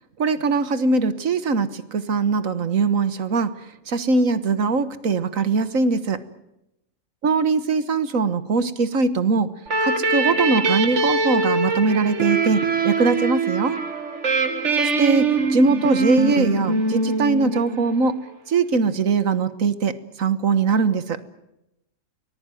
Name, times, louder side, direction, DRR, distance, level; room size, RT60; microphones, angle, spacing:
voice 1, 0.2-3.5 3.9-6.2 7.2-9.5 9.8-13.8 14.8-18.2 18.5-21.2, right 4 dB, 70° right, 13 dB, 1.7 m, -21 dB
sound 1, 9.7-18.1, right 3 dB, 55° right, 2.3 m, -23 dB
24.5 x 19.5 x 9.2 m, 0.87 s
omnidirectional pair, 1.4 m